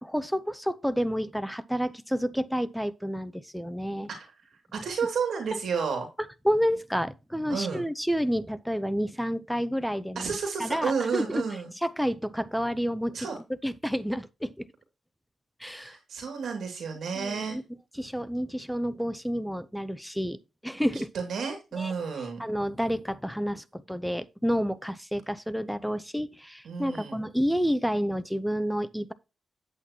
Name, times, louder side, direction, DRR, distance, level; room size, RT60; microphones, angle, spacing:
voice 1, 0.0-4.1 5.5-5.6 6.4-10.3 10.6-11.4 11.8-13.2 13.6-14.7 15.6-16.0 17.2-17.6 17.9-21.1 21.8-21.9 22.4-29.1, equal, ahead, 0.7 m, -29 dB
voice 2, 4.2-6.1 7.5-7.9 10.2-11.7 13.1-13.4 15.7-17.6 20.9-22.4 26.6-27.2, right 5 dB, 70° right, 2.5 m, -32 dB
9.7 x 8.5 x 2.9 m
cardioid pair, 100°, 0 cm